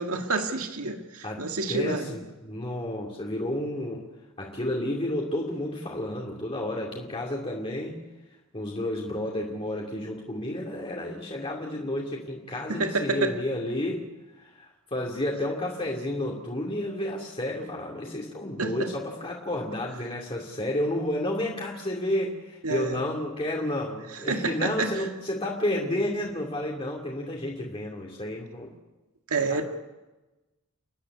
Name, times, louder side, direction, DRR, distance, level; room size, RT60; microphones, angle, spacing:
voice 1, 0.0-2.2 12.7-13.4 18.6-18.9 22.6-23.0 24.3-25.1 29.3-29.6, right 3 dB, 90° right, 4 dB, 1.9 m, -28 dB
voice 2, 1.2-4.1 4.4-8.0 8.5-14.1 14.4-28.7 29.5-29.6, left 1 dB, 25° left, -1 dB, 2.5 m, -31 dB
29.5 x 10.5 x 9.7 m, 1.1 s
head